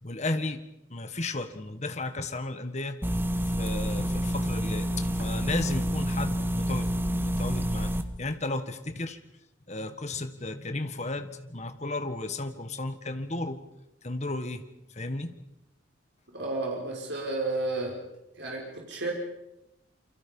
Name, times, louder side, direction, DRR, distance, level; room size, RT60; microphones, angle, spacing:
voice 1, 0.0-0.6 0.9-3.0 3.6-7.9 8.2-9.2 9.7-13.6 14.0-14.6 14.9-15.3, left 2 dB, 35° left, 9 dB, 1.6 m, -34 dB
sound 1, 3.0-8.0, equal, 10° right, 1.1 m, -28 dB
voice 2, 16.3-18.0 18.4-19.1, right 2 dB, 60° right, -2 dB, 5.8 m, -32 dB
28.0 x 24.5 x 5.5 m, 0.89 s
head